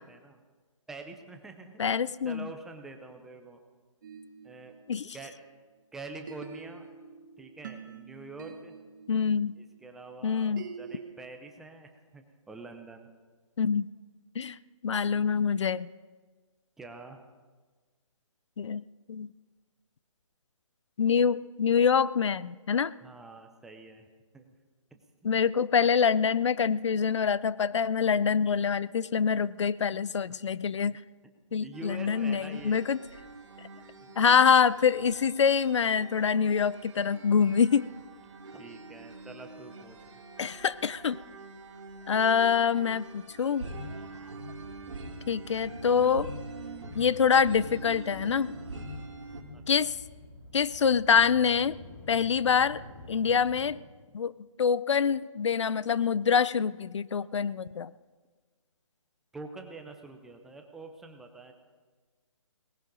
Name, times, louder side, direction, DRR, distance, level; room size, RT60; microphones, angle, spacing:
voice 1, 0.1-0.4 0.9-3.6 4.4-4.8 5.1-5.3 5.9-6.9 7.4-8.7 9.6-13.1 16.8-17.2 23.0-24.1 24.3-24.6 24.9-25.3 31.6-32.8 34.0-34.1 38.5-40.0 49.5-49.9 59.3-61.5, right 3 dB, ahead, 4 dB, 0.5 m, -46 dB
voice 2, 1.8-2.5 4.9-5.2 9.1-9.6 10.2-10.7 13.6-13.9 14.4-14.6 14.8-15.9 18.6-18.8 19.1-19.3 21.0-22.9 25.2-31.0 31.5-33.0 34.2-37.9 40.4-41.2 42.1-43.6 45.3-46.3 46.9-48.6 49.7-50.0 50.5-51.8 52.1-53.8 54.1-54.3 54.6-57.9, left 6 dB, 60° left, 19 dB, 0.4 m, -25 dB
sound 1, 4.0-5.8 6.3-11.1, right 5 dB, 35° right, 1.4 m, -47 dB
sound 2, 31.7-49.4, right 2 dB, 60° right, 2.4 m, -44 dB
sound 3, 44.5-53.7, left 2 dB, 35° left, 3.4 m, -49 dB
18.5 x 17.5 x 3.9 m, 1.4 s
hypercardioid pair, 160°, 17 cm